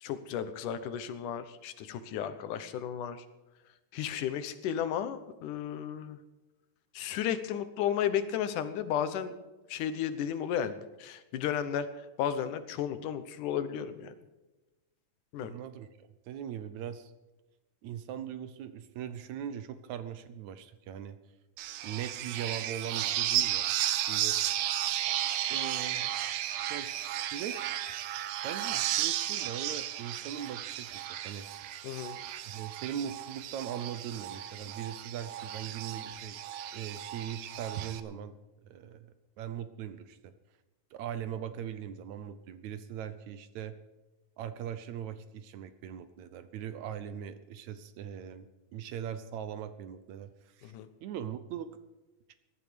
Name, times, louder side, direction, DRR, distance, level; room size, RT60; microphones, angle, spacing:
voice 1, 0.0-3.2 3.9-6.2 6.9-9.3 9.7-11.9 12.2-14.1 15.3-15.5 31.8-32.2 50.6-50.9, left 9 dB, 80° left, 12 dB, 2.5 m, -33 dB
voice 2, 15.4-17.1 17.8-21.2 21.8-23.7 24.1-24.4 25.5-26.3 26.7-27.8 28.4-31.5 32.5-36.4 36.7-38.4 38.6-40.3 40.9-43.8 44.4-48.5 48.7-50.7 51.0-51.7, right 9 dB, 70° right, 12 dB, 2.0 m, -40 dB
sound 1, 21.6-38.0, right 12 dB, 90° right, 2.4 m, -34 dB
17.5 x 12.0 x 5.2 m, 1.1 s
omnidirectional pair, 3.6 m